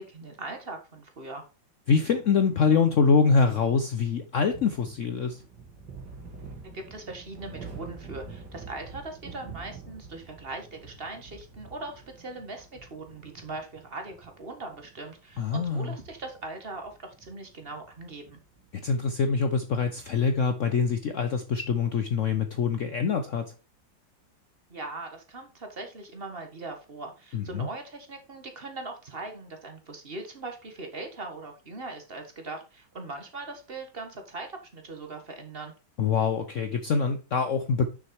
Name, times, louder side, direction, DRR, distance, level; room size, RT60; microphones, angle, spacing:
voice 1, 0.0-1.4 6.7-18.4 24.7-35.7, right 2 dB, 30° right, 1.6 m, -40 dB
voice 2, 1.9-5.4 15.4-15.9 18.8-23.5 27.3-27.7 36.0-37.9, left 5 dB, 65° left, 0.8 m, -25 dB
sound 1, 4.5-20.3, right 4 dB, 65° right, 2.4 m, -47 dB
6.4 x 6.2 x 4.6 m
omnidirectional pair, 2.0 m